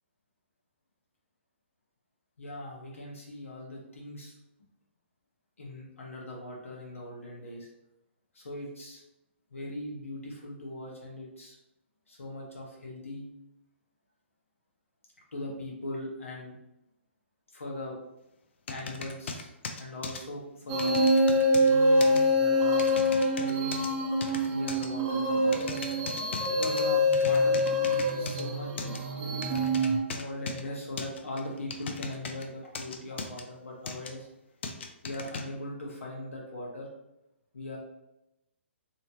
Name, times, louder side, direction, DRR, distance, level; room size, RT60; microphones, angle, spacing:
voice 1, 2.4-4.3 5.6-7.7 8.3-9.0 9.5-11.6 12.1-13.3 15.3-16.5 17.5-18.0 18.7-19.5 19.8-21.0 21.6-22.9 23.4-23.9 24.5-25.6 26.5-27.9 28.1-28.7 29.2-29.7 30.0-34.3 35.0-36.9 37.5-37.8, left 1 dB, 85° left, -3 dB, 1.0 m, -40 dB
sound 1, 18.7-20.2 20.8-21.7 22.0-22.2 22.8-23.9 24.2-24.9 25.5-26.8 27.1-28.4 28.8-29.0 29.4-30.6 31.0-32.4 32.7-33.4 33.8-34.1 34.6-35.4, left 4 dB, 60° left, 0.4 m, -38 dB
sound 2, 20.7-30.0, left 1 dB, 20° right, 0.5 m, -25 dB
2.9 x 2.1 x 2.9 m, 0.88 s
hypercardioid pair, 135°, 7 cm